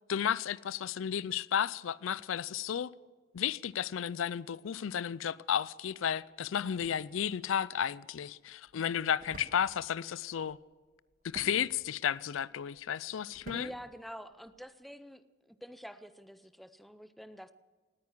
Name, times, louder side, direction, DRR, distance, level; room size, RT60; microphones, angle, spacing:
voice 1, 0.1-2.9 3.3-10.6 11.2-13.7, left 8 dB, 75° left, 0.4 m, -33 dB
sound 1, 5.9-14.8, right 1 dB, 45° right, 1.7 m, -55 dB
voice 2, 13.5-17.5, equal, ahead, 0.5 m, -47 dB
19.0 x 9.5 x 7.3 m
head